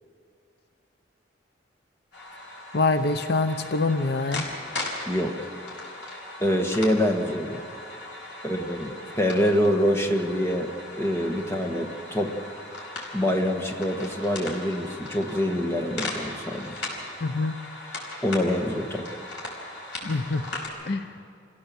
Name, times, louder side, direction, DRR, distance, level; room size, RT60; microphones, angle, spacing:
sound 1, 2.1-20.7, left 2 dB, 85° left, 5.1 m, -38 dB
voice 1, 2.7-4.4 17.2-17.5 20.0-20.5 20.9-21.1, left 3 dB, 60° left, 9 dB, 0.7 m, -25 dB
voice 2, 5.1-5.4 6.4-7.6 8.4-10.7 11.0-12.3 13.1-16.8 18.2-19.2, equal, 15° left, 2 dB, 1.4 m, -25 dB
26.0 x 16.0 x 7.1 m, 2.4 s
head